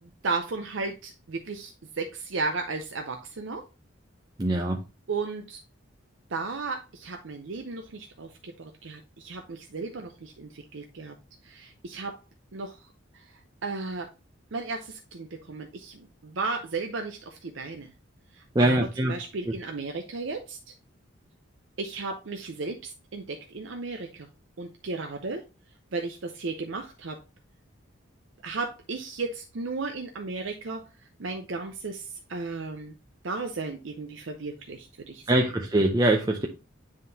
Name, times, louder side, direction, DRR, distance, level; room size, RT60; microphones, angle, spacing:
voice 1, 0.0-3.7 5.1-5.6 6.3-11.1 11.4-12.2 12.5-13.3 13.6-14.1 14.5-17.9 18.3-20.7 21.8-24.3 24.6-25.4 25.9-27.2 28.4-30.9 31.2-32.9 33.2-35.4, right 3 dB, 65° right, 4 dB, 0.6 m, -35 dB
voice 2, 4.4-4.8 18.6-19.1 35.3-36.5, right 1 dB, 20° right, 1 dB, 0.5 m, -23 dB
9.6 x 3.7 x 2.7 m, 0.29 s
head